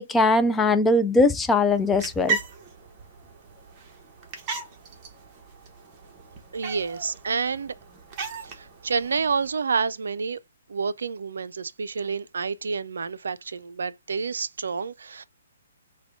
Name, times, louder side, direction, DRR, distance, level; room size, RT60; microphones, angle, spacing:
voice 1, 0.0-2.4, left 2 dB, 10° left, 0.4 m, -20 dB
sound 1, 1.7-9.5, right 4 dB, 30° right, 1.0 m, -36 dB
voice 2, 6.5-7.7 8.4-10.4 10.7-15.2, right 5 dB, 75° right, 0.4 m, -29 dB
4.7 x 2.2 x 3.6 m
hypercardioid pair, 140°, 0 cm